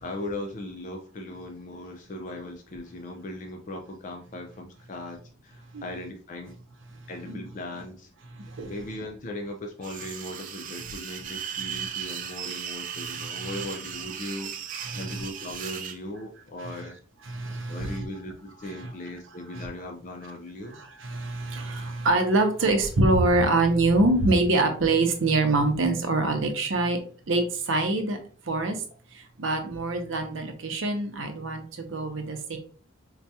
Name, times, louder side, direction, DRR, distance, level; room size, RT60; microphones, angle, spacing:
voice 1, 0.0-6.5 7.1-8.1 8.7-17.0 17.7-20.8, left 1 dB, 40° left, 3 dB, 0.4 m, -38 dB
voice 2, 8.4-8.7 13.3-13.5 14.8-15.2 16.6-16.7 17.3-18.0 18.6-18.9 19.5-19.7 20.7-27.0 27.3-28.2 28.5-28.8 29.4-32.6, right 2 dB, 70° right, 6 dB, 0.6 m, -25 dB
sound 1, 9.8-16.0, right 8 dB, 40° right, 0.3 m, -36 dB
4.5 x 2.2 x 2.7 m, 0.41 s
head